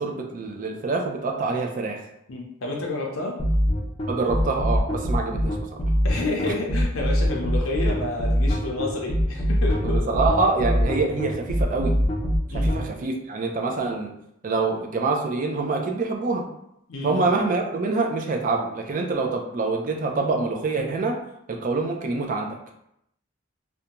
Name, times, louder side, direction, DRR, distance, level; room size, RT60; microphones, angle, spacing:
voice 1, 0.0-2.0 4.1-5.8 9.8-12.0 12.5-14.1 14.4-16.4 17.0-21.2 21.5-22.6, right 3 dB, 40° right, 3 dB, 0.3 m, -25 dB
voice 2, 2.3-3.4 6.0-10.0 12.5-12.7 16.9-17.2, left 2 dB, 80° left, -1 dB, 0.5 m, -29 dB
sound 1, 3.4-12.8, equal, 30° left, 0.4 m, -23 dB
2.5 x 2.2 x 2.8 m, 0.79 s
head